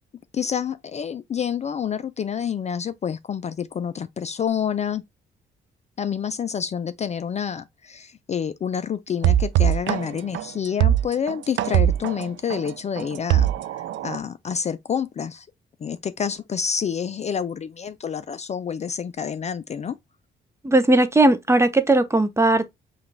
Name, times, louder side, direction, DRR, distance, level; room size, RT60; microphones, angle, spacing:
voice 1, 0.3-5.0 6.0-15.5 15.8-20.0, left 7 dB, 35° left, 0.4 m, -28 dB
sound 1, 9.2-14.2, right 11 dB, 70° right, 0.4 m, -21 dB
voice 2, 20.6-22.7, right 2 dB, 15° right, 0.6 m, -18 dB
5.8 x 2.4 x 3.2 m
cardioid pair, 90°, 20 cm